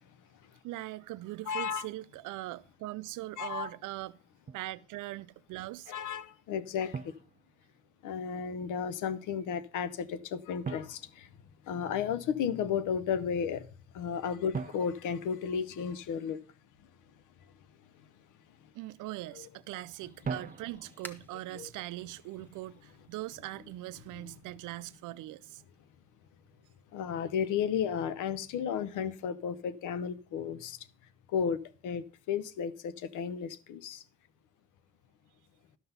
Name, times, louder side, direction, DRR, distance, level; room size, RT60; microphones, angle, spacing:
voice 1, 0.6-4.2 4.5-5.9 18.7-25.6, right 17 dB, 85° right, 0.5 m, -41 dB
voice 2, 1.5-1.9 3.4-3.7 5.9-7.1 8.0-11.3 11.7-13.7 13.9-16.4 19.3-19.5 21.5-21.7 26.9-30.9 31.3-34.0, left 7 dB, 90° left, 0.8 m, -33 dB
Drum, 4.5-4.8 6.9-8.1 10.6-12.1 14.5-16.2 20.2-21.2, right 5 dB, 30° right, 0.5 m, -42 dB
sound 1, 19.1-24.3, equal, 5° left, 1.1 m, -55 dB
12.0 x 5.9 x 5.4 m
cardioid pair, 90°, 30 cm